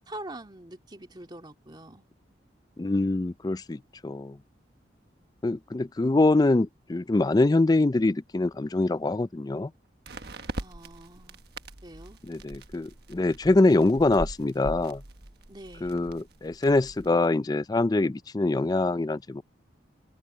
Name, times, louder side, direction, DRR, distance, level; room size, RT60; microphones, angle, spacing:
voice 1, 0.1-2.0 10.6-11.4 11.8-12.2 15.5-15.9, right 1 dB, 25° right, 2.4 m, -44 dB
voice 2, 2.8-4.4 5.4-9.7 12.2-15.0 15.8-19.4, left 2 dB, 20° left, 0.4 m, -24 dB
sound 1, 3.3-3.4 10.0-17.1, right 1 dB, 60° right, 1.4 m, -42 dB
open air
head